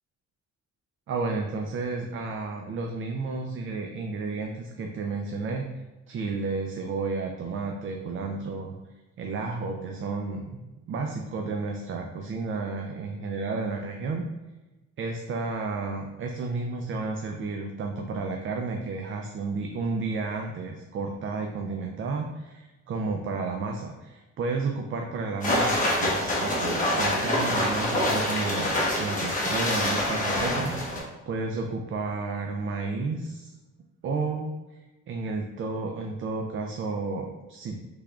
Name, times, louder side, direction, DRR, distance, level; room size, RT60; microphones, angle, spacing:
voice 1, 1.1-5.7 6.1-8.8 9.2-10.6 10.9-14.3 15.0-33.5 34.0-37.8, right 3 dB, 45° right, 2 dB, 0.4 m, -32 dB
sound 1, 25.4-31.0, left 1 dB, 30° left, 1.1 m, -26 dB
3.5 x 3.3 x 2.3 m, 1.1 s
cardioid pair, 105°, 29 cm